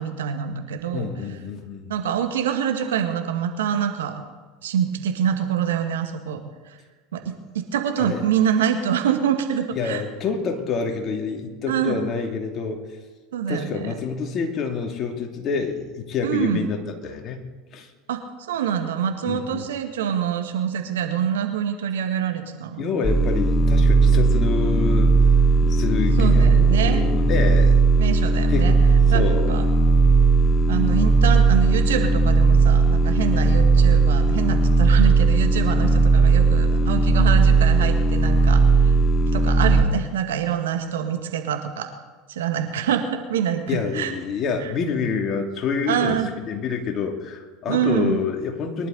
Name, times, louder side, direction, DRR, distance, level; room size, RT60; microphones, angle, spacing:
voice 1, 0.0-1.1 1.9-4.2 4.6-6.4 6.7-6.8 7.1-10.0 11.7-12.0 13.3-13.9 16.2-16.7 18.1-18.2 18.5-22.8 26.2-27.1 28.0-28.7 29.1-29.2 29.5-29.7 30.7-38.9 39.3-41.9 42.3-44.1 44.6-44.7 45.9-46.3 47.7-48.2, right 8 dB, 75° right, 5 dB, 1.7 m, -25 dB
voice 2, 0.9-1.9 8.0-8.2 9.8-12.8 13.5-17.4 17.7-17.9 19.3-19.7 22.8-25.1 25.6-27.8 28.5-28.6 29.1-29.6 43.7-46.2 46.4-48.9, left 5 dB, 40° left, 2 dB, 2.6 m, -27 dB
sound 1, 23.0-39.8, right 3 dB, 25° left, 1.0 m, -17 dB
22.5 x 11.5 x 4.0 m, 1.3 s
hypercardioid pair, 80°, 0 cm